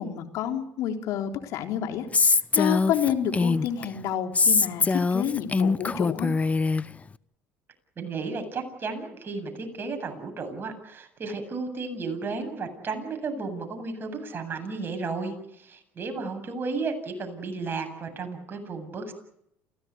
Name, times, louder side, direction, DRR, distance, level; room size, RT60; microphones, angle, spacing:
voice 1, 0.0-2.1 2.5-6.3, left 9 dB, 65° left, 5 dB, 3.6 m, -29 dB
Female speech woman speaking, 2.1-3.9 4.4-6.8, left 4 dB, 25° left, 0.9 m, -23 dB
voice 2, 8.0-19.1, right 4 dB, 35° right, 5 dB, 7.9 m, -33 dB
28.5 x 16.5 x 9.5 m, 0.77 s
hypercardioid pair, 70°, 6 cm